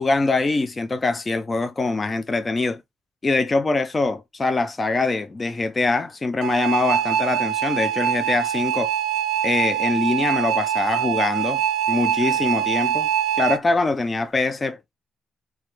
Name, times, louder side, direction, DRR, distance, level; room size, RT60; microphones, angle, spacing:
voice 1, 0.0-2.8 3.2-8.9 9.4-11.6 11.9-13.1 13.4-14.9, left 3 dB, 30° left, 0.4 m, -23 dB
sound 1, 6.4-13.6, right 9 dB, 80° right, 0.4 m, -23 dB
3.1 x 2.3 x 3.0 m
cardioid pair, 90°, 0 cm